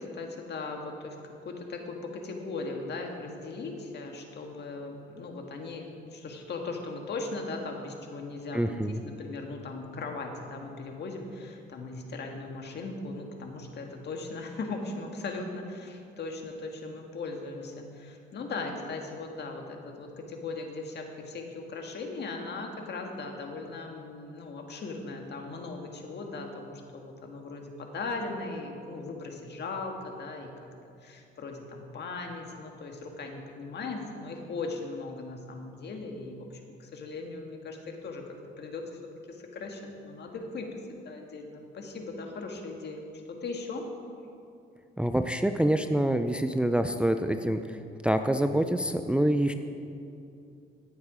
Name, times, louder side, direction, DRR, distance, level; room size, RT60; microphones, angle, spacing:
voice 1, 0.1-1.2 1.4-8.6 8.9-30.7 31.0-38.2 38.6-38.8 39.3-43.9, left 3 dB, 60° left, 3 dB, 1.7 m, -38 dB
voice 2, 8.5-9.0 45.0-47.8 48.0-49.5, right 1 dB, 5° right, 8 dB, 0.5 m, -26 dB
17.5 x 7.2 x 5.0 m, 2.6 s
cardioid pair, 90°, 20 cm